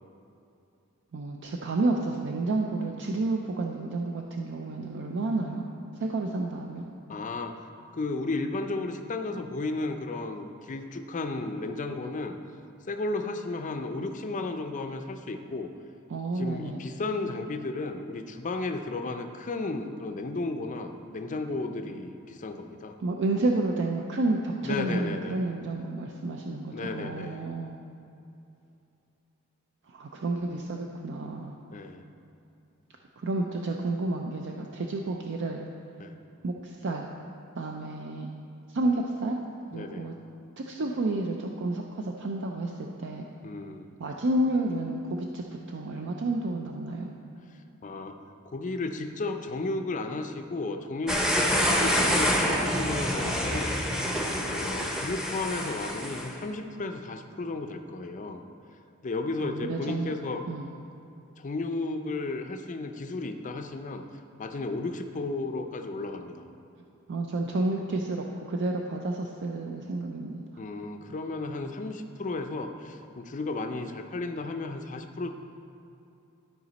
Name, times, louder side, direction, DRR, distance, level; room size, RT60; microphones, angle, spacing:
voice 1, 1.1-5.7 6.0-6.9 16.1-16.8 23.0-27.8 29.9-31.6 33.2-35.6 36.4-37.1 37.6-38.3 38.7-39.4 39.7-40.1 40.6-43.2 44.0-47.1 59.4-60.1 60.5-60.7 67.1-70.4, right 2 dB, 55° right, 2 dB, 0.5 m, -30 dB
voice 2, 7.1-7.5 7.9-12.4 12.9-15.7 16.4-22.9 24.6-25.5 26.7-27.4 31.7-32.0 36.0-36.1 39.7-40.1 43.4-43.8 47.8-48.1 48.5-51.2 51.5-54.0 54.5-58.4 59.0-60.4 61.4-64.0 64.4-66.4 70.6-75.3, left 3 dB, 35° left, 6 dB, 0.5 m, -34 dB
sound 1, 51.1-56.3, equal, 5° right, 0.7 m, -27 dB
12.5 x 5.0 x 4.0 m, 2.8 s
head